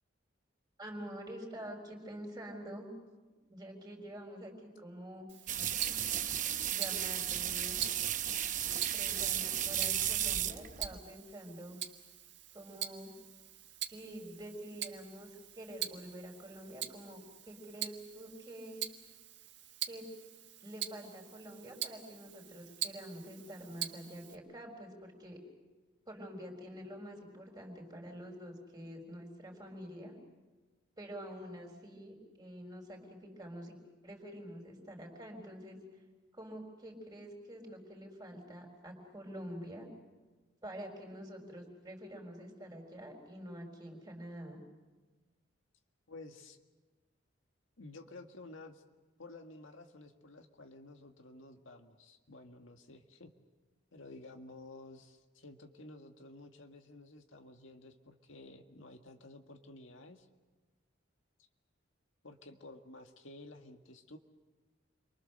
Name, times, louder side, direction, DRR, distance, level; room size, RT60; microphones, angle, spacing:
voice 1, 0.8-2.9 3.5-5.3 6.7-7.8 8.9-11.8 12.5-13.1 13.8-18.8 19.9-20.1 20.6-25.4 26.1-30.1 31.0-33.8 34.0-35.8 36.3-39.9 40.6-44.6, equal, 20° right, 2 dB, 4.2 m, -47 dB
Tick-tock, 5.3-24.3, right 11 dB, 65° right, 1.5 m, -44 dB
sound 1, 5.5-11.0, right 10 dB, 40° right, 0.8 m, -34 dB
voice 2, 46.1-46.6 47.8-48.8 49.2-53.3 53.9-60.3 62.2-64.2, left 2 dB, 85° left, 4 dB, 1.8 m, -52 dB
29.5 x 24.0 x 6.7 m, 1.3 s
head